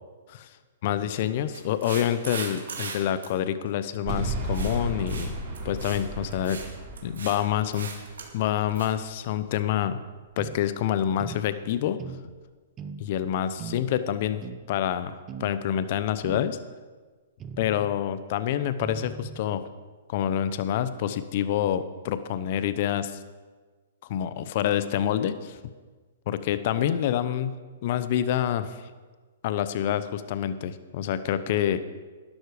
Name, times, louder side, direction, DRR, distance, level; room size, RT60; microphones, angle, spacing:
voice 1, 0.8-5.3 5.6-6.6 7.0-7.9 8.3-10.0 10.4-12.0 13.0-14.4 14.7-16.6 17.6-19.6 20.1-23.2 24.1-25.6 26.3-27.5 27.8-28.9 29.4-31.8, left 10 dB, 50° left, 13 dB, 0.8 m, -27 dB
sound 1, 1.5-3.0 3.2-3.3 4.5-4.8 5.1-5.3 5.5-6.0 6.3-6.7 7.0-7.4 7.7-8.3 8.8-8.9, right 5 dB, 85° right, 2.2 m, -38 dB
sound 2, 4.1-9.2, right 1 dB, 40° right, 3.8 m, -34 dB
sound 3, 10.4-10.6 11.2-11.4 12.0-12.2 12.8-13.0 13.6-13.8 14.4-14.6 15.3-15.5 16.2-16.5 17.4-18.0 18.8-19.5, right 6 dB, 25° right, 0.8 m, -39 dB
11.5 x 11.5 x 5.0 m, 1.4 s
hypercardioid pair, 135°, 0 cm